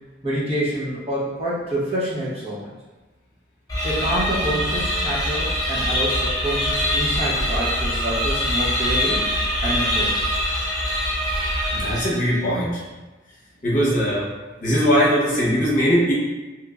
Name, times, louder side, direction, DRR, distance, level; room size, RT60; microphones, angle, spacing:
voice 1, 0.2-2.7 3.8-9.2 9.6-10.2, right 1 dB, 30° right, -8 dB, 0.8 m, -27 dB
sound 1, 3.7-12.4, equal, 20° left, 0.6 m, -23 dB
voice 2, 11.7-12.8 13.6-14.3 14.6-16.1, equal, 45° left, -7 dB, 0.9 m, -20 dB
3.3 x 2.9 x 2.4 m, 1.2 s
head